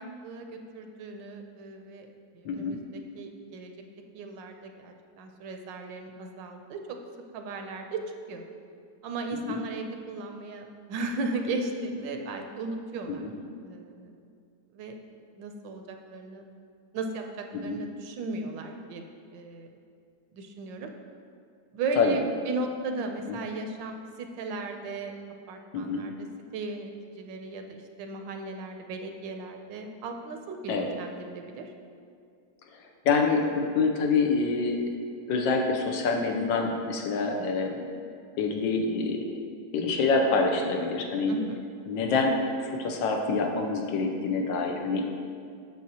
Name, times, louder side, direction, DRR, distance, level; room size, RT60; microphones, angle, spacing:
voice 1, 0.0-2.1 2.3-3.7 4.1-7.0 7.3-8.0 8.3-8.4 9.0-13.3 13.6-14.1 14.7-15.0 15.3-16.4 16.9-19.0 19.3-19.7 20.3-20.9 21.7-25.1 25.5-26.1 26.5-26.9 27.2-31.7 41.3-41.6, right 3 dB, 80° right, 4 dB, 1.3 m, -36 dB
voice 2, 2.4-2.8 9.5-9.6 13.1-13.3 17.5-17.8 22.0-22.2 23.3-23.4 25.7-26.0 30.7-30.9 33.0-34.8 35.3-37.8 38.4-39.2 39.7-41.3 41.9-42.4 42.6-45.0, left 4 dB, 85° left, 2 dB, 1.4 m, -26 dB
8.4 x 6.3 x 2.8 m, 2.3 s
omnidirectional pair, 2.0 m